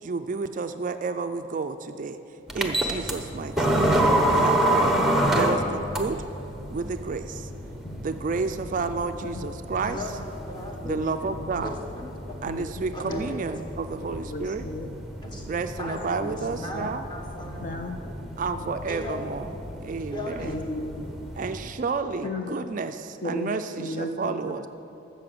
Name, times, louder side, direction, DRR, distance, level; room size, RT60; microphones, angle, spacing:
voice 1, 0.0-4.0 4.3-6.2 6.7-7.5 8.0-10.0 10.8-11.7 12.4-14.7 15.5-17.0 18.4-19.5 19.8-20.6 21.4-24.7, right 4 dB, 40° right, 9 dB, 0.3 m, -31 dB
sound 1, 2.5-21.7, right 1 dB, ahead, 0.8 m, -29 dB
voice 2, 8.6-8.9 9.2-9.5 10.8-11.1 11.4-11.6 12.5-12.6 13.0-13.4 14.0-14.9 15.8-16.9 17.6-18.0 18.3-18.7 20.4-21.1 22.2-22.6 23.2-23.5 23.8-24.7, left 1 dB, 40° left, 4 dB, 0.5 m, -35 dB
voice 3, 9.8-10.8 11.6-12.4 12.9-13.5 15.2-17.7 18.9-19.5 20.1-20.6 22.2-22.3 23.3-23.5, left 1 dB, 20° left, 0 dB, 1.5 m, -37 dB
12.5 x 6.8 x 7.7 m, 2.9 s
head